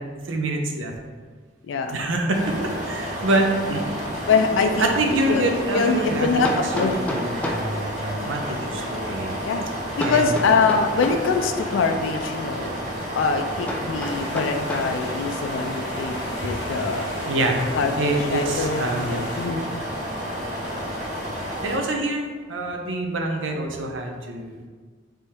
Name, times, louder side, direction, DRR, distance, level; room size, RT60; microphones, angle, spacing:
voice 1, 0.2-0.9 1.9-2.5 2.8-3.8 4.3-9.4 10.0-10.3 16.4-16.5 17.3-17.6 18.0-19.2 21.6-24.7, right 2 dB, 85° right, 2 dB, 0.7 m, -26 dB
voice 2, 1.7-2.0 4.3-4.7 5.3-5.4 5.7-6.9 9.4-9.7 10.0-12.7 13.2-16.1 16.4-17.1 17.7-18.8 19.4-19.6, left 4 dB, 80° left, 6 dB, 0.4 m, -23 dB
sound 1, 2.3-21.7, equal, 40° right, 1.2 m, -31 dB
Hammer, 6.4-7.7 10.0-11.3 13.7-15.0, equal, 5° left, 0.4 m, -30 dB
sound 2, 14.0-19.5, left 1 dB, 60° left, 1.0 m, -37 dB
3.5 x 3.4 x 4.3 m, 1.5 s
head